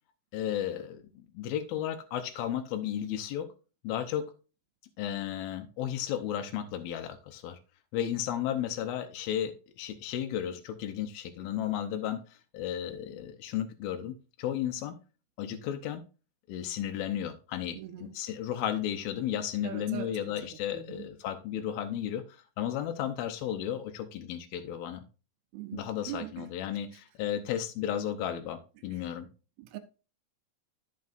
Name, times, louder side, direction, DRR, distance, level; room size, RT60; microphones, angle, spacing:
voice 1, 0.3-3.5 3.8-4.3 5.0-7.6 7.9-12.2 12.5-15.0 15.4-16.0 16.5-25.0 25.7-29.3, left 10 dB, 75° left, 2.4 m, -34 dB
voice 2, 17.8-18.2 19.6-21.1 25.5-26.5 29.6-29.8, right 12 dB, 80° right, 2.4 m, -42 dB
13.5 x 5.4 x 2.5 m
omnidirectional pair, 4.8 m